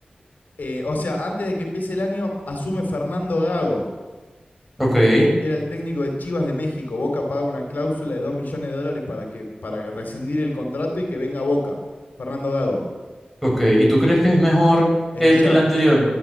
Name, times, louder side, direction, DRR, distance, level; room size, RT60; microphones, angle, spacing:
voice 1, 0.6-3.8 5.4-11.8 12.2-12.8 15.1-15.6, left 1 dB, 80° left, 2 dB, 3.2 m, -25 dB
voice 2, 4.8-5.3 13.4-14.9 15.2-16.1, equal, ahead, -3 dB, 6.8 m, -16 dB
13.0 x 12.5 x 8.5 m, 1.3 s
wide cardioid pair, 80°, 3 cm